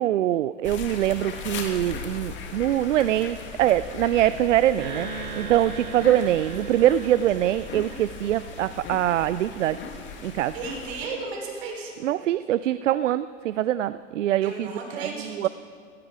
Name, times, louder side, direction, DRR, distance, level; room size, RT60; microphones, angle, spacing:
voice 1, 0.0-9.8 10.2-10.5 12.0-14.7 14.9-15.5, right 12 dB, 75° right, 16 dB, 0.5 m, -23 dB
sound 1, 0.6-11.1, left 5 dB, 30° left, 2.0 m, -38 dB
sound 2, 4.8-9.3, right 4 dB, 30° right, 4.1 m, -40 dB
voice 2, 10.5-11.9 14.4-15.5, right 3 dB, 55° right, 0 dB, 4.9 m, -34 dB
16.5 x 15.5 x 4.8 m, 2.2 s
hypercardioid pair, 105°, 38 cm